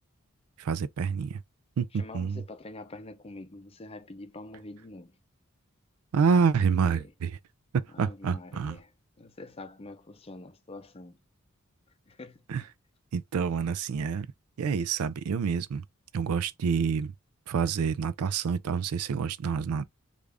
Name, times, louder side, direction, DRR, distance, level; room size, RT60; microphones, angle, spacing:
voice 1, 0.6-1.4 1.8-2.4 6.1-7.4 7.7-8.8 12.5-12.6 13.1-14.3 14.6-15.8 16.1-17.1 17.5-19.8, right 6 dB, 85° right, 0.4 m, -27 dB
voice 2, 1.9-5.2 6.9-7.1 7.9-8.9 9.2-11.2 12.1-12.4, left 2 dB, 25° left, 0.5 m, -45 dB
3.4 x 2.5 x 3.3 m
head